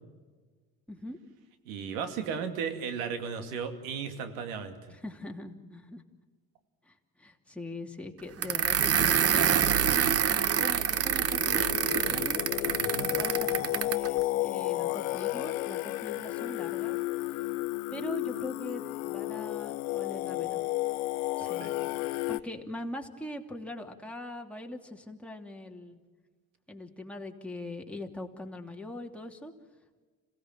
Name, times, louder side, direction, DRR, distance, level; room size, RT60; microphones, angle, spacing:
voice 1, 0.9-1.2 4.9-6.0 6.8-12.5 12.9-17.0 17.9-20.6 21.4-21.7 22.3-26.0 26.7-29.5, left 1 dB, 5° left, 1 dB, 3.0 m, -42 dB
voice 2, 1.7-4.9 12.8-13.1 21.4-21.7 22.1-22.3, right 6 dB, 85° right, 7 dB, 2.5 m, -36 dB
sound 1, 8.4-14.1, right 8 dB, 35° right, 1.0 m, -26 dB
Singing, 10.9-22.4, left 19 dB, 85° left, 0.6 m, -32 dB
27.0 x 17.5 x 7.6 m, 1.4 s
supercardioid pair, 75°, 40 cm